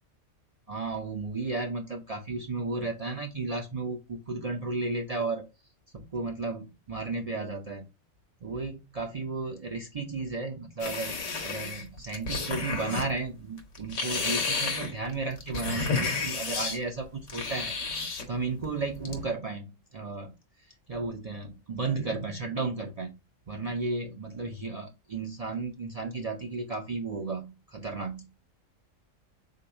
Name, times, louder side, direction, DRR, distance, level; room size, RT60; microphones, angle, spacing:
voice 1, 0.7-5.5 5.9-7.8 8.4-11.2 11.4-17.7 18.3-20.3 20.9-23.1 23.5-28.2, right 3 dB, 50° right, 2 dB, 0.4 m, -34 dB
sound 1, 10.8-13.1 13.6-16.8 17.3-18.2 18.6-19.3, left 4 dB, 75° left, 1.3 m, -31 dB
3.8 x 2.8 x 4.5 m, 0.26 s
omnidirectional pair, 1.3 m